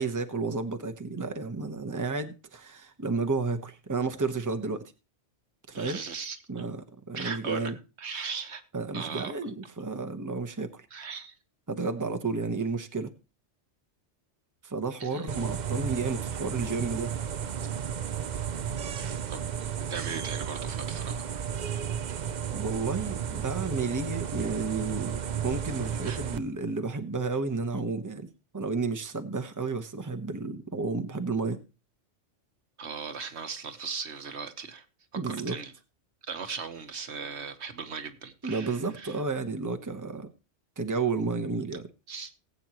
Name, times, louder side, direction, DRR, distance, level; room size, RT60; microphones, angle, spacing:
voice 1, 0.0-4.8 5.7-6.0 6.5-7.7 8.7-10.8 11.7-13.1 14.6-17.1 22.5-28.3 28.5-31.6 35.1-35.6 38.4-40.3 40.8-41.8, right 4 dB, 15° right, 1.1 m, -32 dB
voice 2, 5.7-6.7 7.1-7.7 8.0-8.6 8.9-9.3 10.9-11.3 15.0-15.3 19.3-19.5 19.9-21.5 26.0-26.2 32.8-34.8 35.3-35.7 36.2-39.2 42.1-42.3, right 5 dB, 70° right, 1.5 m, -38 dB
sound 1, 15.3-26.4, right 8 dB, 45° right, 0.7 m, -33 dB
19.0 x 8.4 x 3.0 m
omnidirectional pair, 1.2 m